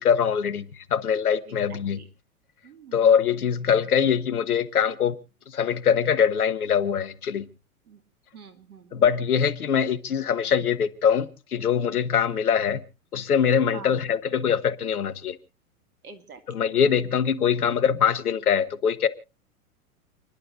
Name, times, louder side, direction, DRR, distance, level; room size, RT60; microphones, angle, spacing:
voice 1, 0.0-2.0 2.9-5.2 5.5-7.5 8.9-12.8 13.1-15.4 16.5-19.1, left 7 dB, 80° left, 1.3 m, -23 dB
voice 2, 1.5-2.0 2.6-3.1 7.9-8.0 8.3-9.0 13.7-14.0 16.0-17.1, right 6 dB, 75° right, 2.3 m, -46 dB
29.0 x 11.5 x 2.6 m
figure-of-eight pair, 100°, 44 cm